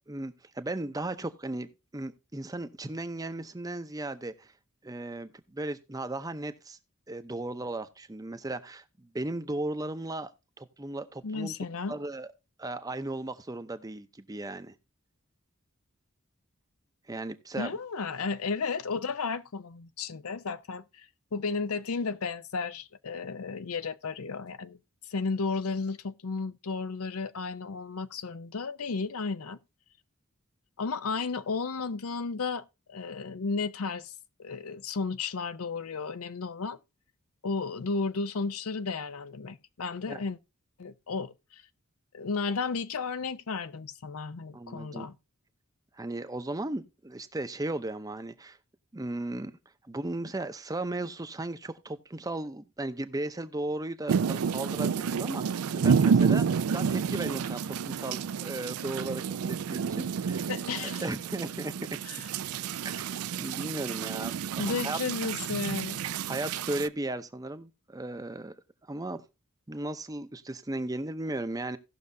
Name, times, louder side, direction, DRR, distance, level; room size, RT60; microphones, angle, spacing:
voice 1, 0.1-4.5 4.8-6.8 7.1-10.3 10.6-11.5 11.9-12.3 12.6-14.7 17.1-17.7 40.1-40.2 44.5-45.1 46.0-48.6 48.9-49.5 49.9-60.5 61.0-62.0 62.8-65.0 66.3-68.5 68.9-69.2 69.7-71.8, right 2 dB, 15° right, 0.6 m, -36 dB
voice 2, 11.2-12.0 17.6-21.1 21.3-24.8 25.1-29.6 30.8-34.1 34.4-36.8 37.4-40.4 40.8-41.6 42.1-45.1 60.5-61.1 62.0-62.2 64.6-66.0, left 4 dB, 80° left, 0.6 m, -33 dB
sound 1, 54.1-66.9, right 6 dB, 85° right, 0.4 m, -29 dB
17.0 x 6.3 x 2.7 m
head